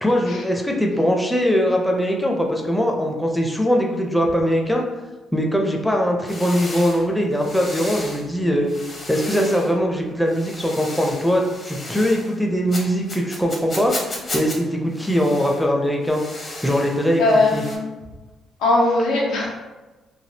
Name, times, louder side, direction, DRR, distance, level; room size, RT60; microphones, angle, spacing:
voice 1, 0.0-4.8 5.3-8.7 9.1-14.0 14.3-16.2 16.6-17.6, equal, ahead, 0 dB, 0.5 m, -21 dB
sound 1, 6.3-8.3 8.7-9.7 10.2-12.4 12.7-14.6 14.9-15.7 16.0-17.8, left 2 dB, 40° left, 0.8 m, -35 dB
voice 2, 17.2-17.8 18.6-19.5, left 2 dB, 90° left, -3 dB, 0.8 m, -19 dB
3.3 x 2.3 x 2.8 m, 1.2 s
cardioid pair, 90°, 0 cm